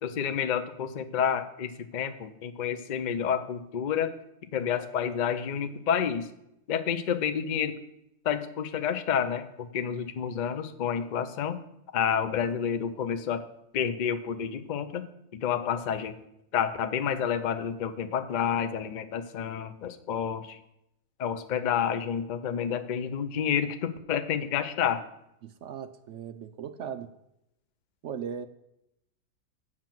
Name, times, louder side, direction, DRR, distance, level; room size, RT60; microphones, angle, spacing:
voice 1, 0.0-4.2 4.5-6.3 6.7-7.8 8.2-11.6 11.9-13.4 13.7-15.1 15.3-16.2 16.5-20.6 21.2-25.0, left 8 dB, 70° left, 10 dB, 0.4 m, -29 dB
voice 2, 25.4-27.1 28.0-28.5, right 8 dB, 65° right, 9 dB, 0.7 m, -38 dB
7.5 x 5.9 x 7.5 m, 0.83 s
omnidirectional pair, 1.7 m